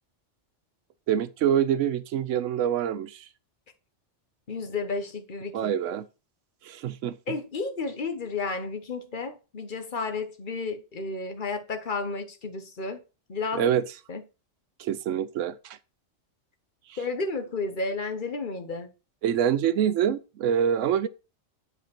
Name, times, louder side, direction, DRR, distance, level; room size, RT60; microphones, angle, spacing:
voice 1, 1.1-3.3 5.5-6.1 6.6-7.2 13.5-13.8 14.8-15.8 16.9-17.0 19.2-21.1, right 9 dB, 90° right, 1.0 m, -25 dB
voice 2, 4.5-5.7 7.3-13.0 13.3-13.7 14.1-14.2 17.0-18.9, left 3 dB, 45° left, 1.3 m, -32 dB
8.3 x 5.1 x 4.4 m
omnidirectional pair, 1.2 m